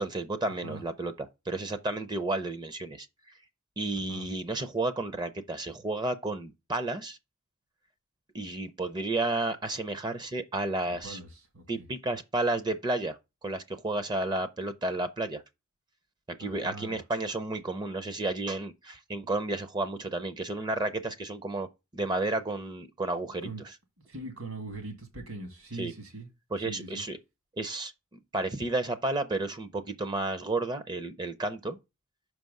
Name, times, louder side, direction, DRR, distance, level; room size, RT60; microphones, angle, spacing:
voice 1, 0.0-3.1 3.8-7.2 8.3-11.2 11.7-15.4 16.3-21.7 21.9-23.8 25.7-25.9 26.5-27.2 27.6-27.9 28.3-31.8, right 2 dB, 20° right, 0.5 m, -32 dB
voice 2, 10.9-11.3 11.5-11.9 16.4-17.0 23.4-23.6 24.1-26.3 26.7-27.0, right 2 dB, 75° right, 2.0 m, -41 dB
6.0 x 4.7 x 5.2 m
head